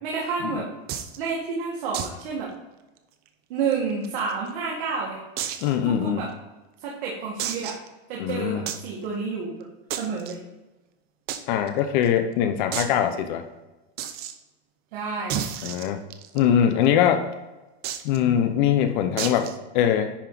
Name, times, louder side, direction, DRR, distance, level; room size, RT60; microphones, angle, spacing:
voice 1, 0.0-0.7 1.2-2.5 3.5-5.2 5.9-6.3 6.8-7.8 8.1-9.5 9.9-10.4 14.9-15.4, right 5 dB, 60° right, -3 dB, 1.9 m, -29 dB
sound 1, 0.9-1.2 1.9-2.2 2.5-2.6 3.0-3.1 3.7-4.5 5.4-5.7 6.3-6.4 7.4-7.9 8.7-8.9 9.9-10.3 11.3-11.4 11.7-11.8 12.0-12.1 12.7-13.0 14.0-14.3 15.3-16.4 17.8-18.2 19.2-19.6, right 10 dB, 30° right, 0.6 m, -31 dB
voice 2, 5.6-6.3 8.2-8.7 11.5-13.5 15.6-16.0 16.3-17.2 18.0-19.5 19.7-20.1, left 9 dB, 50° left, 8 dB, 0.7 m, -22 dB
10.5 x 4.7 x 3.9 m, 1.1 s
supercardioid pair, 160°, 31 cm